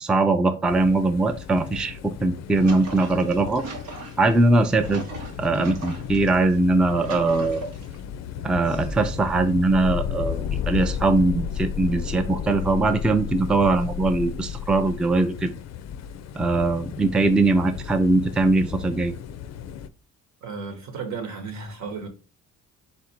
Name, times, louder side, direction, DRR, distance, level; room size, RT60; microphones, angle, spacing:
voice 1, 0.0-3.6 4.2-5.0 5.4-7.7 8.4-15.5 16.3-19.1, right 2 dB, 5° right, 0.3 m, -21 dB
sound 1, 0.7-19.9, left 9 dB, 60° left, 0.4 m, -34 dB
sound 2, 2.2-6.3 6.7-8.0 8.6-9.4, right 3 dB, 85° right, 1.2 m, -38 dB
voice 2, 20.4-22.1, right 5 dB, 65° right, 1.3 m, -34 dB
4.2 x 2.6 x 4.3 m
cardioid pair, 90°, 30 cm